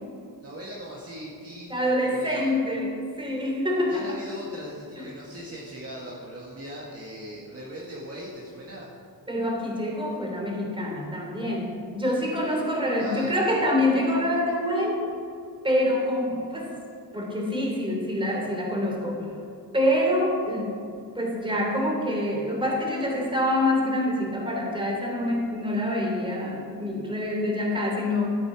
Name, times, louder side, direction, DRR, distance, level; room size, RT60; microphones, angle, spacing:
voice 1, 0.4-2.5 3.9-8.9 13.0-13.3, equal, 40° right, -5 dB, 2.0 m, -39 dB
voice 2, 1.7-4.2 9.3-15.0 15.6-16.7 17.1-19.3 19.7-20.7 21.1-28.4, left 1 dB, 15° right, -2 dB, 3.1 m, -26 dB
14.0 x 9.5 x 5.0 m, 2.5 s
wide cardioid pair, 110°, 38 cm